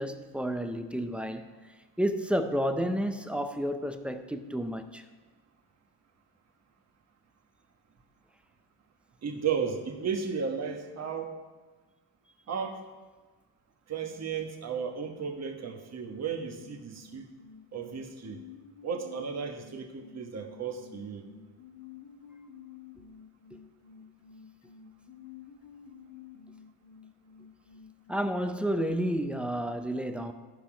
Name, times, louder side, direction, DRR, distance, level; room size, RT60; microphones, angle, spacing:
voice 1, 0.0-1.5 2.0-5.0 28.1-30.3, equal, 5° right, 0.6 m, -31 dB
voice 2, 9.2-11.3 12.5-12.8 13.9-17.3 17.7-18.4 18.8-21.3, right 6 dB, 35° right, 1.4 m, -34 dB
sound 1, 16.1-28.2, left 8 dB, 50° left, 1.6 m, -52 dB
14.5 x 5.6 x 5.0 m
cardioid pair, 105°, 44 cm